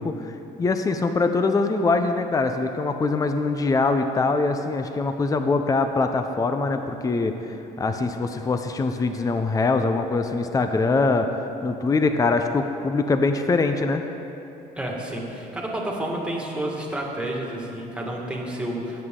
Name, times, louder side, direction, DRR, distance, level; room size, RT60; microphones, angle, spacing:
voice 1, 0.0-11.3 11.6-14.0, left 3 dB, 20° left, 7 dB, 0.6 m, -23 dB
voice 2, 14.8-19.0, right 1 dB, 5° right, -2 dB, 2.0 m, -30 dB
17.5 x 8.0 x 3.8 m, 2.9 s
cardioid pair, 110°, 17 cm